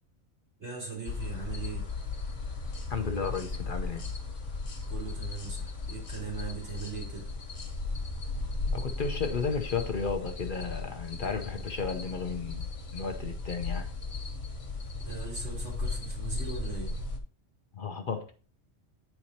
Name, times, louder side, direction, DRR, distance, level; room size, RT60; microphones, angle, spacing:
voice 1, 0.6-1.9 4.9-7.3 15.0-17.0, right 5 dB, 70° right, 4.2 m, -39 dB
sound 1, 1.0-17.2, left 3 dB, 80° left, 1.6 m, -36 dB
voice 2, 2.9-4.1 8.7-13.9 17.8-18.3, left 5 dB, 50° left, 0.8 m, -33 dB
9.9 x 4.5 x 2.8 m
omnidirectional pair, 1.2 m